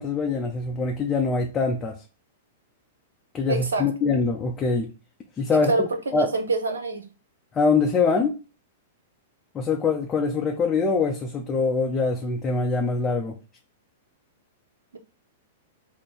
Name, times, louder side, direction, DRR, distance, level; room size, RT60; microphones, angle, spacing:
voice 1, 0.0-2.0 3.3-4.9 5.4-6.3 7.5-8.4 9.5-13.4, left 4 dB, 25° left, 0.6 m, -24 dB
voice 2, 3.5-3.9 5.7-7.0, right 3 dB, 80° right, 0.8 m, -25 dB
3.8 x 2.2 x 4.4 m
hypercardioid pair, 105°, 0 cm